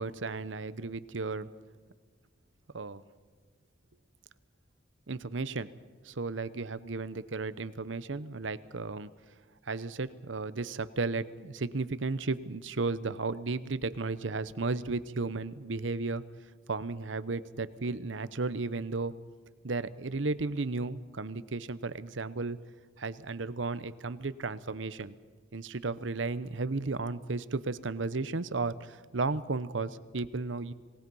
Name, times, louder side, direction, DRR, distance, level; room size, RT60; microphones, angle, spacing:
voice 1, 0.0-1.5 2.7-3.0 5.1-5.7 6.0-9.1 9.7-16.2 16.7-19.1 19.6-22.6 23.0-25.2 25.5-30.7, right 3 dB, 70° right, 14 dB, 0.9 m, -34 dB
27.5 x 19.0 x 5.5 m, 1.4 s
head